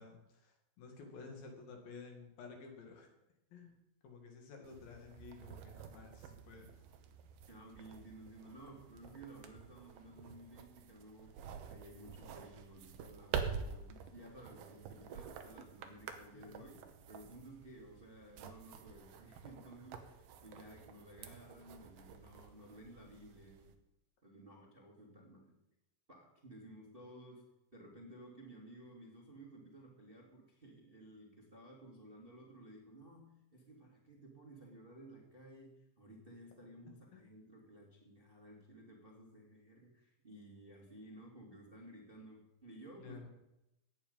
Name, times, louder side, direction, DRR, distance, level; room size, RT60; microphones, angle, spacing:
voice 1, 0.0-3.1 3.5-3.8 4.0-6.7 16.3-16.6 37.1-37.2 43.0-43.3, left 4 dB, 80° left, 3 dB, 4.0 m, -53 dB
sound 1, 4.6-23.7, right 7 dB, 90° right, 3.0 m, -48 dB
voice 2, 7.5-23.8 24.2-25.6 26.1-43.3, right 1 dB, 20° right, -1 dB, 1.7 m, -55 dB
16.0 x 9.3 x 5.4 m, 0.90 s
omnidirectional pair, 4.1 m